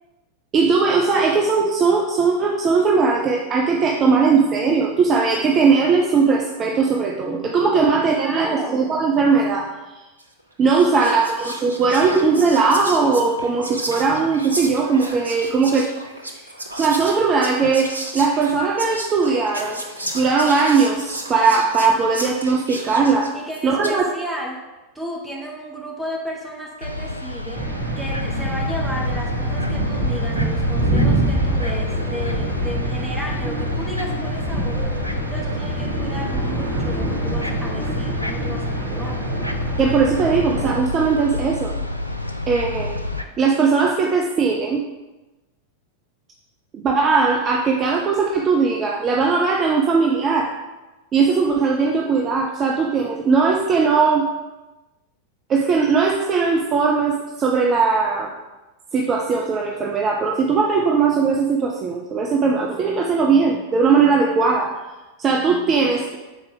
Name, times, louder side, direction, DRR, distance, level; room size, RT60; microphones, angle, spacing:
voice 1, 0.5-9.7 10.6-15.9 16.8-19.8 20.1-23.3 23.6-24.0 39.8-41.7 42.5-43.0 43.4-44.8 46.7-50.5 51.1-54.2 55.5-58.3 58.9-64.7 65.2-66.2, right 4 dB, 25° right, 0 dB, 0.6 m, -19 dB
voice 2, 7.7-8.9 10.9-11.1 23.3-24.6 24.9-27.6 28.0-35.0 35.3-39.3, equal, 5° right, -2 dB, 1.3 m, -33 dB
Whispering, 10.2-10.4 10.8-24.0, right 1 dB, 80° right, 0.7 m, -33 dB
sound 1, 26.8-43.2, left 2 dB, 90° left, 0.4 m, -28 dB
sound 2, 27.5-40.8, right 1 dB, 45° right, 1.3 m, -25 dB
6.8 x 4.3 x 3.7 m, 1.1 s
figure-of-eight pair, 90°, 0 cm